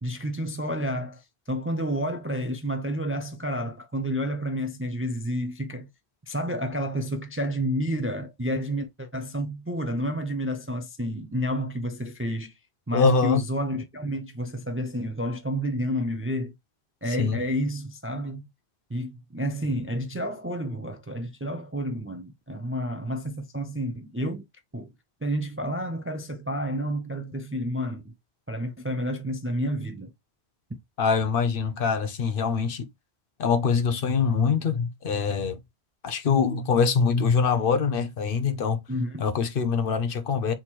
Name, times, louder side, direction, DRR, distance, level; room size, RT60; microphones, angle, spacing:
voice 1, 0.0-5.9 6.2-12.6 12.9-16.5 17.0-18.4 18.9-24.5 24.7-24.9 25.2-28.1 28.5-30.1 38.9-39.3, equal, 20° right, 0.4 m, -30 dB
voice 2, 12.9-13.4 17.2-17.4 31.0-32.9 33.4-35.6 36.0-38.8 39.2-40.5, left 5 dB, 60° left, 0.9 m, -24 dB
3.7 x 3.0 x 4.3 m
omnidirectional pair, 1.1 m